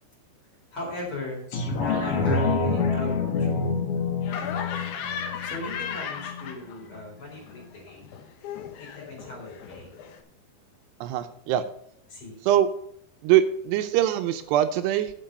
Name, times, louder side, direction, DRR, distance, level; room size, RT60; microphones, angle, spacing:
voice 1, 0.7-1.4 1.8-3.8 5.4-8.1 8.8-9.9 12.1-12.4, left 2 dB, 30° left, -2 dB, 4.5 m, -38 dB
sound 1, 1.5-6.5 7.0-7.1, left 4 dB, 65° left, 1.5 m, -27 dB
Laughter, 4.2-7.0 7.3-10.2, left 7 dB, 90° left, 1.7 m, -36 dB
voice 2, 11.0-11.6 12.4-12.7 13.2-15.1, right 11 dB, 80° right, 9 dB, 2.7 m, -22 dB
8.6 x 7.5 x 6.6 m, 0.66 s
omnidirectional pair, 5.0 m